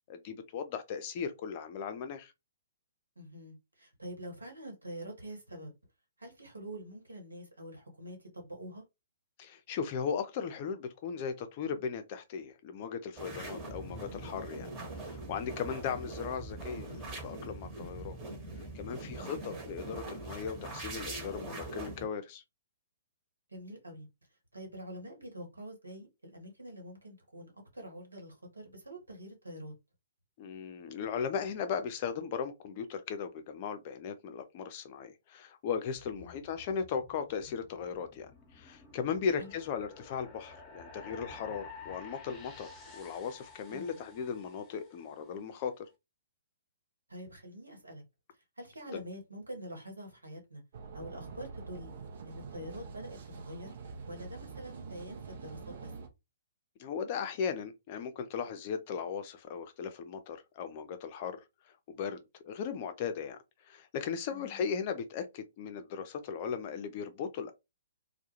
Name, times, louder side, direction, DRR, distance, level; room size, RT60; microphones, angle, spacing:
voice 1, 0.1-2.3 9.4-14.7 15.0-18.2 18.7-22.4 30.4-45.9 48.9-49.0 56.8-61.4 61.9-63.4 63.7-67.5, left 6 dB, 40° left, 0.5 m, -37 dB
voice 2, 3.2-5.7 6.2-8.8 19.1-19.4 23.5-24.1 24.5-29.8 36.1-36.5 39.4-39.5 43.7-44.0 47.1-48.0 48.6-50.6 50.9-51.9 52.3-53.8 54.1-55.9 64.3-64.6, equal, 85° right, 1.0 m, -46 dB
sound 1, 13.1-22.1, right 2 dB, 20° right, 1.0 m, -42 dB
sound 2, 36.0-45.3, left 4 dB, 15° left, 0.8 m, -52 dB
sound 3, 50.7-56.1, right 5 dB, 55° right, 0.6 m, -46 dB
2.3 x 2.1 x 2.9 m
figure-of-eight pair, 120°, 0 cm